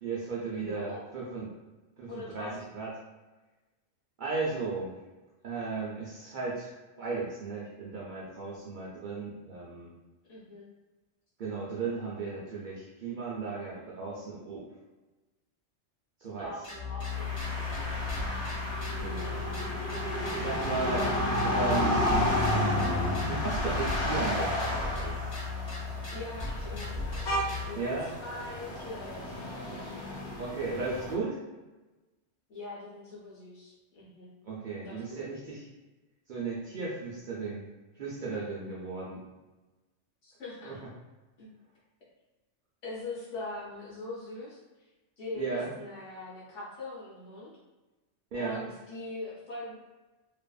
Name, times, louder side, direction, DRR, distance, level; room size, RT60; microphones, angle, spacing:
voice 1, 0.0-1.5 2.0-2.9 4.2-4.9 5.4-6.7 7.0-9.9 11.4-14.7 16.2-16.5 19.0-19.4 20.4-21.1 21.4-22.4 23.3-25.2 27.8-28.1 30.4-31.4 34.4-35.7 36.3-37.6 38.0-39.2 40.7-40.8 45.4-45.7 48.3-48.6, right 4 dB, 60° right, -5 dB, 0.5 m, -35 dB
voice 2, 0.5-1.0 2.1-2.7 10.3-10.7 16.4-18.3 19.1-19.4 26.1-27.9 28.2-30.2 32.5-34.3 34.8-35.2 40.2-40.8 41.4-41.5 42.8-44.6 45.2-47.5 48.3-49.7, left 2 dB, 85° left, -6 dB, 1.3 m, -42 dB
sound 1, 16.6-27.6, left 5 dB, 35° left, 1.0 m, -36 dB
sound 2, 17.1-31.1, equal, 65° left, 1.2 m, -32 dB
2.6 x 2.4 x 2.2 m, 1.1 s
omnidirectional pair, 1.2 m